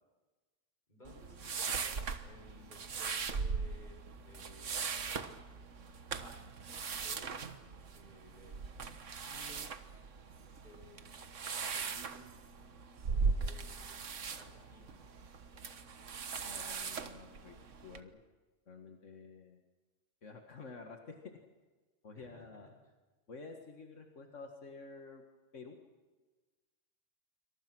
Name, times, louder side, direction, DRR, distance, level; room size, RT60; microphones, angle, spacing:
voice 1, 0.9-5.3 6.2-6.3 7.0-7.4 7.9-8.6 9.1-9.7 10.5-11.1 11.5-12.3 13.1-15.0 22.1-22.4, left 1 dB, 40° left, 1 dB, 7.1 m, -57 dB
sound 1, 1.0-18.0, right 5 dB, 85° right, 1.6 m, -39 dB
voice 2, 16.4-17.6 17.8-18.2 18.7-19.6 20.2-21.4 22.0-22.7 23.3-25.2 25.5-25.8, left 4 dB, 85° left, 3 dB, 2.2 m, -50 dB
27.5 x 25.0 x 6.2 m, 1.3 s
omnidirectional pair, 1.2 m